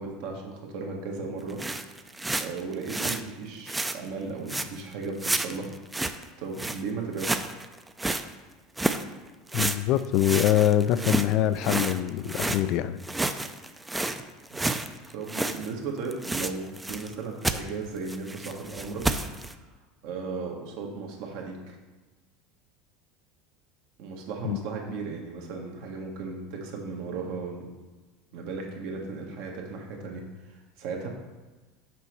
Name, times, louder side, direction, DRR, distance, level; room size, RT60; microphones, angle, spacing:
voice 1, 0.0-1.6 1.9-2.0 2.4-5.7 6.4-7.5 14.5-14.8 15.1-19.1 20.0-21.8 24.0-27.7 28.3-31.1, right 4 dB, 65° right, 1 dB, 1.5 m, -36 dB
sound 1, 1.5-3.2 3.7-4.0 4.5-4.8 5.2-6.2 6.6-6.8 7.2-8.2 8.8-9.0 9.5-12.6 13.0-15.7 16.0-17.1 17.4-17.6 18.1-19.5, right 2 dB, 10° right, 0.5 m, -30 dB
voice 2, 9.5-13.0 24.4-24.6, left 11 dB, 55° left, 14 dB, 0.3 m, -24 dB
6.1 x 5.2 x 4.5 m, 1.2 s
hypercardioid pair, 80°, 0 cm